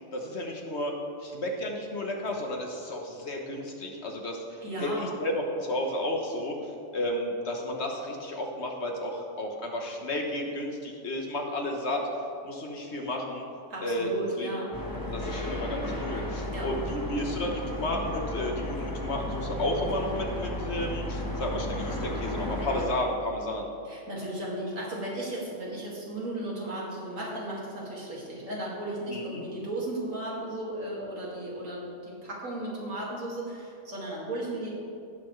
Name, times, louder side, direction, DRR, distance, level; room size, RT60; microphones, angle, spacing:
voice 1, 0.1-1.0 1.2-6.6 6.9-12.0 12.4-13.4 13.8-14.1 14.4-14.5 15.1-23.7 29.1-29.4, left 1 dB, 55° left, 1 dB, 1.4 m, -32 dB
voice 2, 4.6-5.1 13.7-14.8 16.5-16.7 23.8-34.7, right 1 dB, 70° right, -5 dB, 2.6 m, -35 dB
sound 1, 14.7-22.9, left 1 dB, 15° left, 0.9 m, -34 dB
18.0 x 6.8 x 3.2 m, 2.5 s
omnidirectional pair, 1.4 m